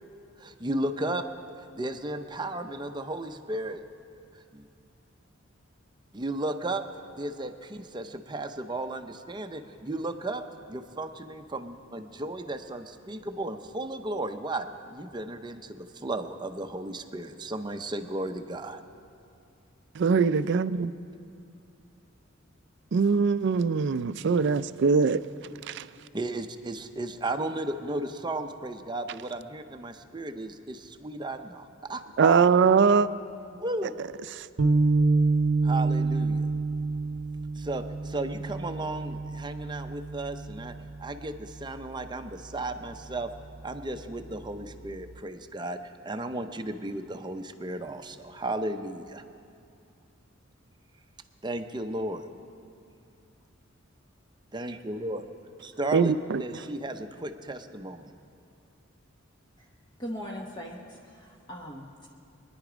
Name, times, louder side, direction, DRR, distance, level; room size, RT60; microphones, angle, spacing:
voice 1, 0.4-1.2 1.7-3.8 4.5-4.7 6.1-6.8 7.2-18.8 26.1-32.4 33.6-34.0 35.6-36.5 37.6-40.7 41.0-43.3 43.6-45.8 46.0-49.2 51.4-52.2 54.5-55.2 55.6-56.1 56.4-58.1, right 2 dB, 20° right, 0.7 m, -34 dB
voice 2, 20.0-20.9 22.9-25.2 25.7-25.8 32.2-33.1 34.3-34.5 55.9-56.4, right 5 dB, 60° right, 0.4 m, -22 dB
sound 1, 34.6-41.0, right 3 dB, 85° right, 0.8 m, -27 dB
voice 3, 60.0-62.1, equal, 20° left, 1.0 m, -40 dB
24.0 x 10.5 x 5.0 m
head